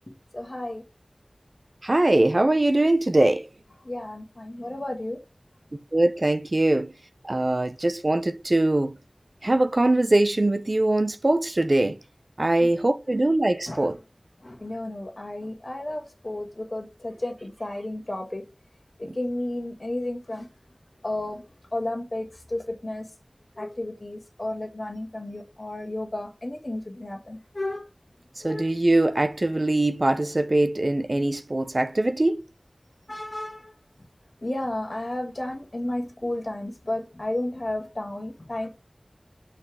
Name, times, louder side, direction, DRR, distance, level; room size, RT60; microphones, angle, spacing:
voice 1, 0.3-0.8 3.8-5.2 13.7-13.9 14.4-18.4 19.0-20.5 21.0-21.4 21.7-23.1 23.6-27.9 28.4-28.7 33.1-33.7 34.4-38.7, left 1 dB, 50° left, 1.5 m, -32 dB
voice 2, 1.8-3.5 5.9-6.9 7.2-8.9 9.4-12.0 12.4-14.0 19.1-19.2 28.4-32.4, right 2 dB, 50° right, 0.6 m, -22 dB
5.6 x 4.1 x 4.8 m
wide cardioid pair, 45°, 0 cm